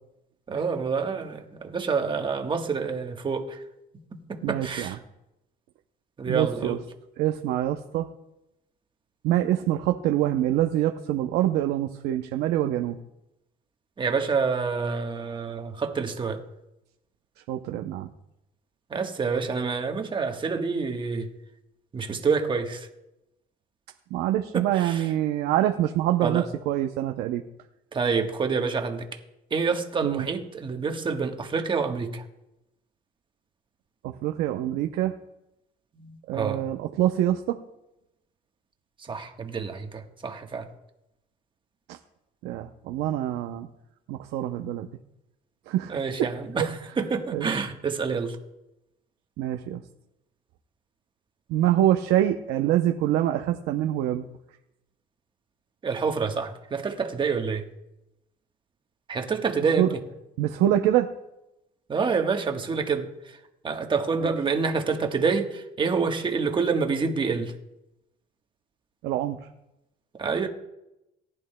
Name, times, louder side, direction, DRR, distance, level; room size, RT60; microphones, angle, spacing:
voice 1, 0.5-3.6 4.3-5.0 6.2-6.8 14.0-16.4 18.9-21.3 21.9-22.9 24.5-25.1 26.2-26.5 27.9-29.1 29.5-32.2 36.0-36.6 39.1-40.6 45.9-48.4 55.8-57.6 59.1-59.9 61.9-63.1 63.6-67.5 70.2-70.5, right 5 dB, 30° right, 1.2 m, -27 dB
voice 2, 4.4-5.0 6.3-6.8 7.2-8.1 9.2-13.0 17.5-18.1 24.1-27.4 30.0-30.3 34.0-35.1 36.3-37.6 41.9-42.0 42.4-43.7 44.1-44.9 45.7-46.3 46.6-46.7 47.3-47.5 49.4-49.8 51.5-54.3 59.8-59.9 60.4-61.1 69.0-69.4, right 12 dB, 85° right, 0.6 m, -25 dB
18.5 x 10.5 x 2.2 m
cardioid pair, 110°, 17 cm